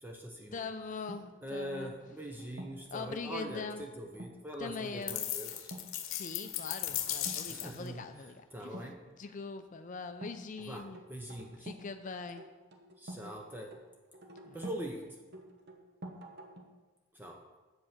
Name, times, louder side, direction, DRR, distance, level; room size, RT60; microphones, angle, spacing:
voice 1, 0.0-0.7 1.4-5.7 7.5-8.1 8.5-9.0 10.7-11.7 13.0-13.8 14.5-15.2 17.1-17.4, right 1 dB, 10° right, 1 dB, 0.6 m, -42 dB
voice 2, 0.5-1.9 2.9-3.8 4.6-5.3 6.1-8.8 9.2-11.0 11.6-12.4 14.4-14.6, left 4 dB, 40° left, 9 dB, 0.4 m, -42 dB
sound 1, 1.1-2.9 4.1-4.4 4.8-5.1 5.5-5.9 6.2-6.6 7.1-7.5 8.7-9.4 10.2-11.9 12.2-14.9 15.3-16.8, right 1 dB, 55° right, 1.1 m, -49 dB
sound 2, 5.1-7.9, left 12 dB, 80° left, 0.9 m, -37 dB
7.9 x 5.3 x 7.2 m, 1.3 s
head